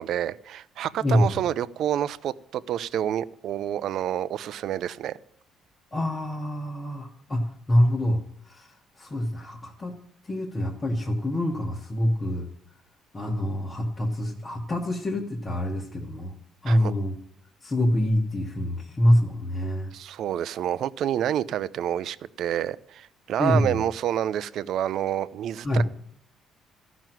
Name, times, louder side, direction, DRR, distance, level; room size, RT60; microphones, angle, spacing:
voice 1, 0.0-5.2 16.7-16.9 19.9-25.8, right 10 dB, 60° right, 17 dB, 0.5 m, -28 dB
voice 2, 5.9-9.9 10.2-12.5 13.1-16.4 16.6-17.1 17.6-19.9 23.4-23.8 25.6-25.8, left 1 dB, 20° left, 0 dB, 1.2 m, -25 dB
14.0 x 6.1 x 9.1 m, 0.69 s
cardioid pair, 155°, 0 cm